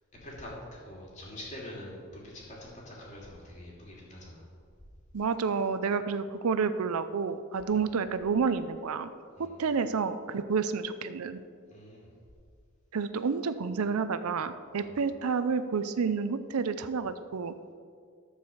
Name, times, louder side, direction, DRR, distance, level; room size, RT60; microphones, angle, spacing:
voice 1, 0.2-4.5 7.7-7.8 9.4-9.6 11.7-12.1 14.8-15.0, left 1 dB, 35° left, -4 dB, 2.6 m, -45 dB
voice 2, 5.1-9.1 9.4-11.4 12.9-17.5, right 5 dB, 85° right, 11 dB, 0.5 m, -30 dB
13.0 x 4.8 x 7.1 m, 2.2 s
head